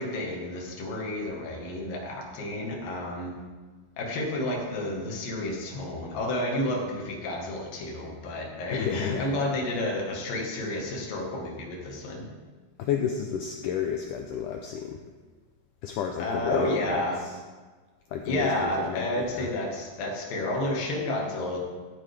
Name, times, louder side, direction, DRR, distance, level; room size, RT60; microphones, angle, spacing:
voice 1, 0.0-3.3 4.0-12.2 16.2-17.3 18.3-21.6, left 1 dB, 70° left, 0 dB, 3.2 m, -30 dB
voice 2, 8.7-9.3 12.8-15.0 15.8-17.4 18.1-19.5, left 8 dB, 85° left, 3 dB, 1.8 m, -31 dB
13.0 x 8.7 x 3.4 m, 1.4 s
omnidirectional pair, 4.3 m